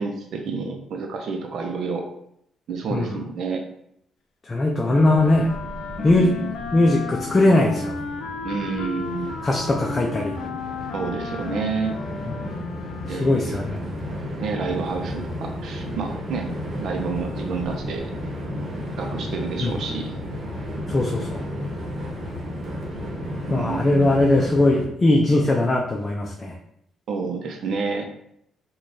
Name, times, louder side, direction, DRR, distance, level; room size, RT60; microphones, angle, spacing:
voice 1, 0.0-2.1 2.7-3.6 6.0-6.5 8.4-9.4 10.9-12.0 13.0-13.6 14.4-16.5 16.8-18.1 19.0-20.2 23.5-24.2 27.1-28.1, right 5 dB, 70° right, 3 dB, 0.6 m, -29 dB
voice 2, 4.5-5.5 6.0-6.3 6.7-7.9 9.4-10.3 13.1-13.8 19.6-19.7 20.9-21.4 23.5-26.5, left 2 dB, 25° left, 0 dB, 0.5 m, -20 dB
Wind instrument woodwind instrument, 4.8-13.5, left 5 dB, 90° left, 0.4 m, -34 dB
Train, 4.9-24.8, equal, 50° right, 1.0 m, -33 dB
3.9 x 2.3 x 3.2 m, 0.74 s
cardioid pair, 90°, 0 cm